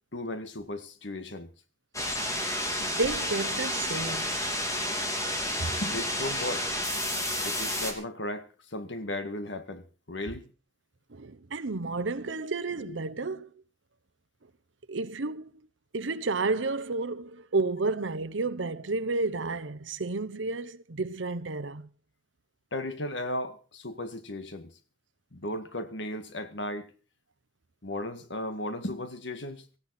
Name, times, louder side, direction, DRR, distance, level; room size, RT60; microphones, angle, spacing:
voice 1, 0.1-1.5 5.8-6.7 7.4-10.5 12.9-13.0 22.7-24.7 25.3-26.9 27.8-29.7, left 1 dB, 70° left, 1.9 m, -35 dB
sound 1, 1.9-7.9, left 1 dB, 20° left, 3.2 m, -30 dB
voice 2, 2.8-4.4 5.6-5.7 11.1-13.5 14.9-15.5 15.9-21.9, right 3 dB, 85° right, 0.9 m, -31 dB
17.5 x 15.5 x 4.3 m
head